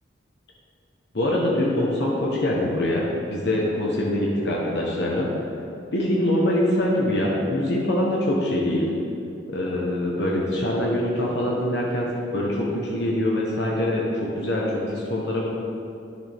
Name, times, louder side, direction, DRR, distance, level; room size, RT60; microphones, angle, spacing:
voice 1, 1.1-5.3 5.9-8.9 9.5-15.5, left 1 dB, 60° left, -4 dB, 1.0 m, -24 dB
10.0 x 6.6 x 3.5 m, 2.6 s
head